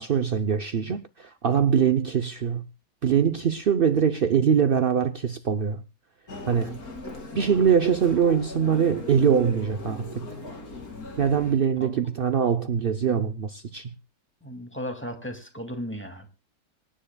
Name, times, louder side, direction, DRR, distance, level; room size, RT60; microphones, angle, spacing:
voice 1, 0.0-2.7 3.0-5.8 6.5-6.8 7.3-10.4 11.2-13.9, right 7 dB, 60° right, 0.5 m, -23 dB
Human voice, 6.3-11.5, left 2 dB, 55° left, 3.1 m, -39 dB
voice 2, 14.4-16.3, equal, 5° left, 2.1 m, -35 dB
25.5 x 10.5 x 2.3 m
omnidirectional pair, 1.9 m